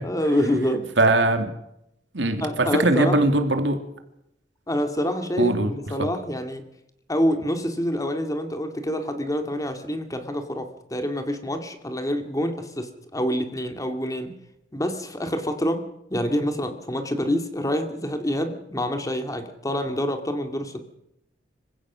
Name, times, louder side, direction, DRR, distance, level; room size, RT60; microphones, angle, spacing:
voice 1, 0.0-0.9 2.4-3.2 4.7-6.6 7.1-14.3 14.7-15.8 16.1-20.8, equal, 20° left, 7 dB, 2.3 m, -26 dB
voice 2, 1.0-1.5 2.1-3.8 5.4-5.7 6.0-6.1, right 2 dB, 70° right, 7 dB, 2.5 m, -21 dB
26.0 x 16.0 x 6.2 m, 0.80 s
head